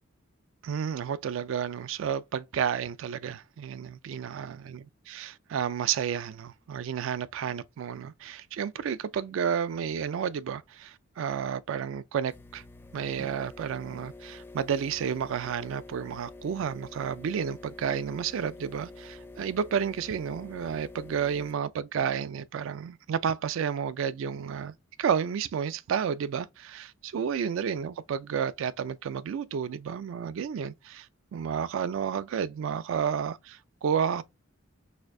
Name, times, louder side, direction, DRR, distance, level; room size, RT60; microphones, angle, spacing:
voice 1, 0.6-12.6 12.9-24.7 25.0-31.1 31.3-34.2, right 7 dB, 70° right, 0.3 m, -31 dB
sound 1, 12.3-21.5, left 2 dB, 10° left, 0.4 m, -47 dB
4.1 x 2.6 x 2.5 m
head